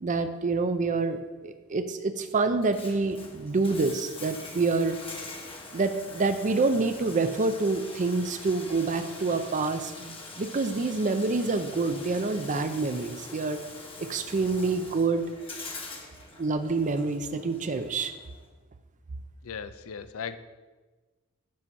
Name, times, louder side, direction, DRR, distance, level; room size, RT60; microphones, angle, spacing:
voice 1, 0.0-5.0 5.7-13.6 14.0-15.2 16.4-18.1, right 3 dB, 35° right, 8 dB, 0.5 m, -27 dB
Bathtub (filling or washing), 2.5-18.5, left 3 dB, 25° left, 1.2 m, -44 dB
voice 2, 19.4-20.4, left 7 dB, 65° left, 12 dB, 0.5 m, -37 dB
8.5 x 6.1 x 5.4 m, 1.3 s
head